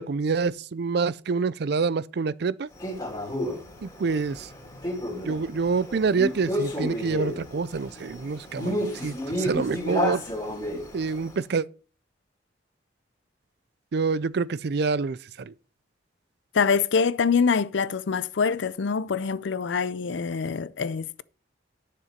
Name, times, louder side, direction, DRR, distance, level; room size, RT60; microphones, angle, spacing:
voice 1, 0.0-2.7 3.8-4.5 5.3-10.2 10.9-11.6 13.9-15.2 15.5-15.6, right 4 dB, 60° right, 0.4 m, -26 dB
Male speech man speaking, 2.8-11.3, equal, 20° left, 3.0 m, -31 dB
voice 2, 16.5-21.2, left 5 dB, 75° left, 0.5 m, -25 dB
10.5 x 6.8 x 5.1 m
head